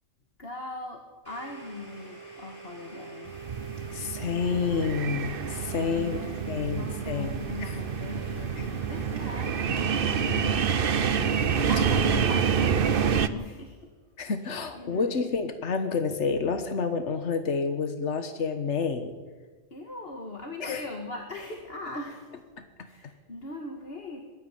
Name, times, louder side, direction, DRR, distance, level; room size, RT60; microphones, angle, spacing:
voice 1, 0.4-3.4 5.9-11.0 11.4-13.9 14.4-15.3 19.7-22.5 22.8-24.2, left 2 dB, 55° left, 1 dB, 2.2 m, -40 dB
Domestic sounds home sounds, 1.2-12.9, right 4 dB, 20° left, 6.8 m, -46 dB
sound 1, 3.3-13.3, right 7 dB, 55° right, 1.0 m, -27 dB
voice 2, 3.9-6.2 6.5-7.8 8.6-8.7 14.2-19.1 20.6-20.8 22.8-22.9, left 5 dB, 80° left, 7 dB, 1.6 m, -29 dB
21.5 x 13.5 x 9.3 m, 1.4 s
omnidirectional pair, 1.2 m